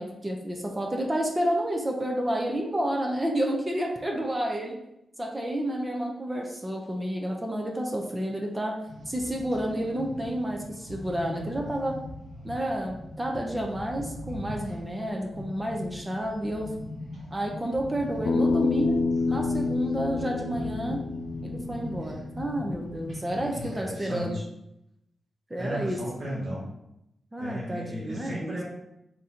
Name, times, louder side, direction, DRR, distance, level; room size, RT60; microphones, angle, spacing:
voice 1, 0.0-4.8 5.2-8.8 9.1-12.0 12.4-16.7 17.3-21.0 21.4-24.4 25.5-26.0 27.3-28.6, right 1 dB, 15° right, 1 dB, 0.5 m, -30 dB
sound 1, 8.9-23.7, left 1 dB, 75° right, 1.3 m, -40 dB
voice 2, 14.2-14.6 23.3-24.4 25.6-26.6 27.4-28.6, equal, 45° right, -7 dB, 1.1 m, -35 dB
Bass guitar, 18.3-22.5, left 3 dB, 60° left, 0.4 m, -28 dB
3.7 x 2.6 x 4.2 m, 0.83 s
wide cardioid pair, 145°, 0 cm